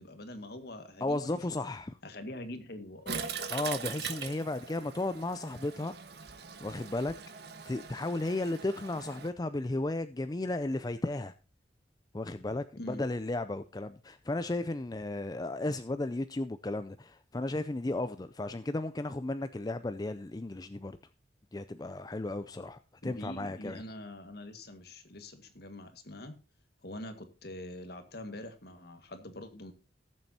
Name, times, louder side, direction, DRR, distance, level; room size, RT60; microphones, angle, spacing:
voice 1, 0.0-1.5 2.0-3.3 12.8-13.0 23.0-26.4 26.8-29.7, left 1 dB, 55° left, 1.8 m, -44 dB
voice 2, 1.0-2.0 3.5-5.9 6.6-7.1 7.7-11.3 12.1-21.0 21.5-23.8, left 2 dB, 20° left, 0.4 m, -34 dB
Toilet flush, 3.1-9.3, right 6 dB, 60° right, 1.4 m, -41 dB
19.0 x 7.5 x 2.8 m
head